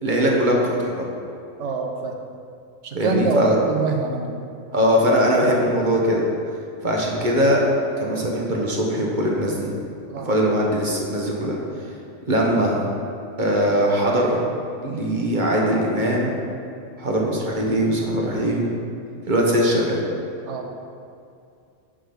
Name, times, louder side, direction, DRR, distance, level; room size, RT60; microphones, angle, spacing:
voice 1, 0.0-1.0 2.9-3.6 4.7-6.3 6.8-7.6 8.0-9.7 10.2-11.6 12.3-12.8 13.4-14.4 14.8-16.3 17.0-18.7 19.3-20.0, equal, 40° right, -2 dB, 1.2 m, -21 dB
voice 2, 1.6-2.1 2.8-4.4 10.1-10.3 20.5-20.7, right 3 dB, 70° right, 3 dB, 1.1 m, -24 dB
10.5 x 4.0 x 5.1 m, 2.5 s
omnidirectional pair, 1.3 m